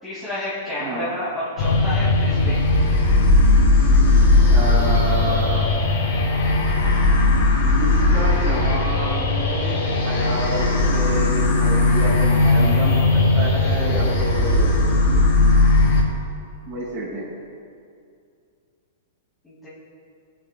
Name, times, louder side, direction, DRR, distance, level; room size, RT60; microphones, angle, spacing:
voice 1, 0.0-2.6 19.4-19.7, left 1 dB, 5° left, -13 dB, 2.4 m, -30 dB
voice 2, 0.8-1.1 4.5-5.7 7.8-9.8 10.0-10.6 10.9-14.7 16.6-17.2, right 1 dB, 30° right, -11 dB, 3.3 m, -29 dB
sound 1, 1.6-16.0, left 2 dB, 55° left, 3.2 m, -18 dB
26.5 x 8.8 x 2.3 m, 2.4 s
supercardioid pair, 165°, 0 cm